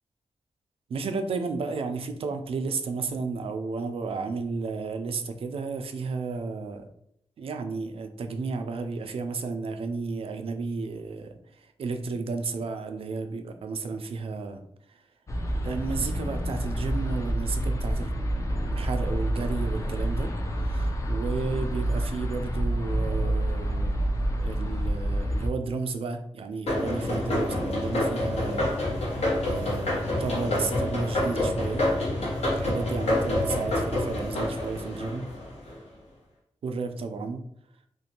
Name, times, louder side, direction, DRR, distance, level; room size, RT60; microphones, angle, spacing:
voice 1, 0.9-6.9 7.4-14.6 14.9-15.0 15.6-18.1 18.4-24.0 24.4-29.1 29.4-35.3 36.6-37.4, right 4 dB, 65° right, 7 dB, 0.4 m, -33 dB
sound 1, 15.3-25.5, right 1 dB, 30° left, 0.4 m, -28 dB
sound 2, 26.7-35.8, left 1 dB, 75° left, 1.0 m, -27 dB
2.5 x 2.2 x 2.8 m, 0.73 s
wide cardioid pair, 90°, 11 cm